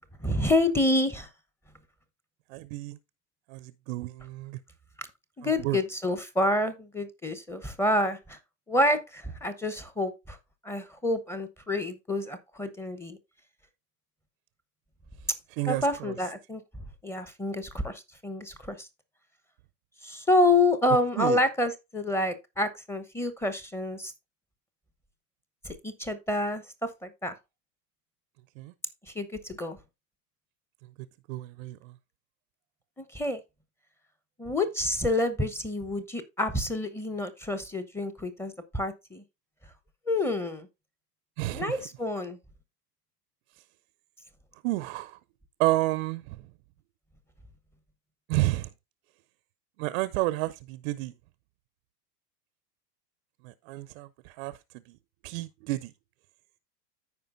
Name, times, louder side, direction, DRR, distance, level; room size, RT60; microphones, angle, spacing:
voice 1, 0.2-1.3 5.0-5.1 5.4-8.4 8.7-10.4 10.6-13.2 15.7-16.6 17.0-18.9 20.0-24.1 25.6-27.3 29.1-29.8 33.1-33.4 34.4-39.2 40.1-40.7 41.5-42.4, left 1 dB, 5° left, 0.9 m, -28 dB
voice 2, 2.5-3.0 3.5-4.6 5.4-5.8 15.6-16.1 21.2-21.4 28.6-28.7 31.3-31.8 41.4-41.8 44.6-45.2 45.6-46.4 48.3-48.7 49.8-51.1 53.4-54.6 55.2-55.9, right 18 dB, 45° right, 0.5 m, -30 dB
14.0 x 5.0 x 2.5 m
hypercardioid pair, 95°, 50 cm